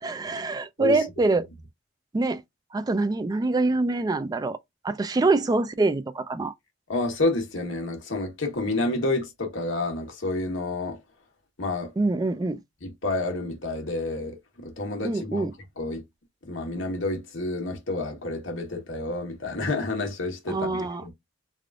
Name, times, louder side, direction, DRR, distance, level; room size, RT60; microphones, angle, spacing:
voice 1, 0.0-1.5 2.1-2.4 2.7-4.6 4.8-6.5 12.0-12.6 15.0-15.5 20.5-21.1, right 3 dB, 20° right, 0.3 m, -25 dB
voice 2, 6.9-11.0 11.6-11.9 12.8-15.5 15.8-16.0 16.4-21.1, left 2 dB, 80° left, 1.2 m, -29 dB
3.4 x 2.4 x 2.4 m
head